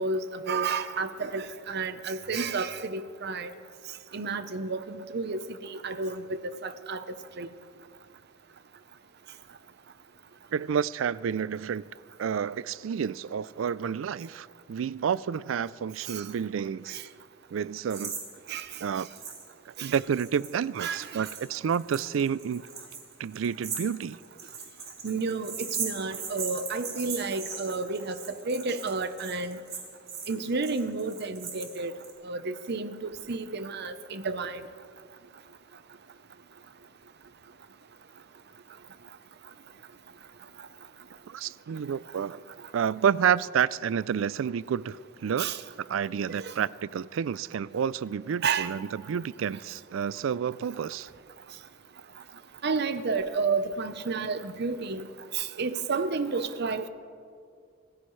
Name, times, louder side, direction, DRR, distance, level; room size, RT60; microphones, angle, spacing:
voice 1, 0.0-3.5 4.1-7.0 7.4-7.5 16.1-16.2 16.9-17.0 18.5-18.7 19.8-19.9 20.8-21.3 25.0-28.1 28.5-29.6 30.3-31.9 32.2-34.6 45.4-45.6 46.3-46.5 48.4-48.7 52.6-55.1 55.3-56.9, right 4 dB, 60° right, 0.8 m, -31 dB
voice 2, 10.5-11.8 12.2-17.0 17.5-18.2 18.8-19.1 19.7-22.7 23.2-24.2 41.3-42.4 42.7-45.6 45.9-51.1, right 7 dB, 80° right, 0.4 m, -29 dB
sound 1, 17.9-18.2 18.5-18.6 19.2-19.4 19.7-32.1, right 6 dB, 35° right, 3.3 m, -38 dB
26.0 x 15.5 x 3.2 m
head